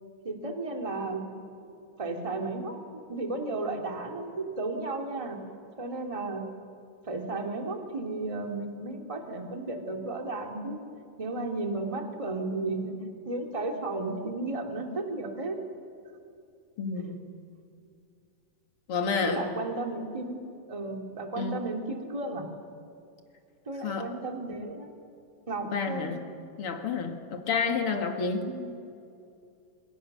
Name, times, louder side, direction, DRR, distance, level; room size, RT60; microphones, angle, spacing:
voice 1, 0.2-1.3 2.0-5.4 5.8-6.4 7.1-10.8 11.2-13.0 13.2-15.6 17.0-17.1 19.2-22.5 23.7-24.9 25.5-26.1 28.4-28.8, right 2 dB, 10° right, 3 dB, 2.2 m, -34 dB
voice 2, 16.8-17.2 18.9-19.5 21.4-21.6 23.8-24.1 25.7-26.2 26.6-28.5, left 5 dB, 45° left, 5 dB, 2.7 m, -29 dB
28.0 x 27.5 x 6.8 m, 2.5 s
omnidirectional pair, 3.7 m